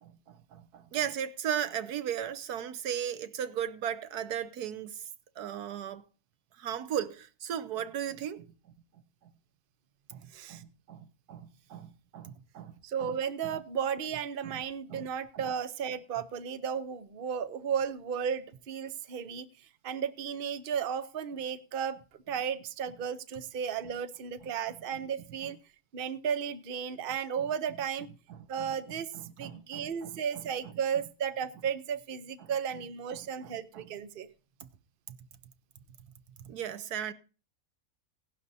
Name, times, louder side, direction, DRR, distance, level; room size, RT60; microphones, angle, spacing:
voice 1, 0.0-5.0 5.4-6.0 6.6-8.5 10.1-12.7 13.0-13.1 13.4-13.5 14.4-14.5 14.9-15.1 15.3-15.4 25.4-25.5 28.3-28.7 29.1-30.4 32.4-32.5 33.1-33.8 34.6-34.7 35.1-35.2 36.4-37.1, right 9 dB, 85° right, 1.4 m, -37 dB
voice 2, 12.8-19.5 19.8-25.6 25.9-28.1 28.5-29.1 29.4-34.3, right 7 dB, 45° right, 0.8 m, -34 dB
17.0 x 11.5 x 2.7 m
omnidirectional pair, 1.6 m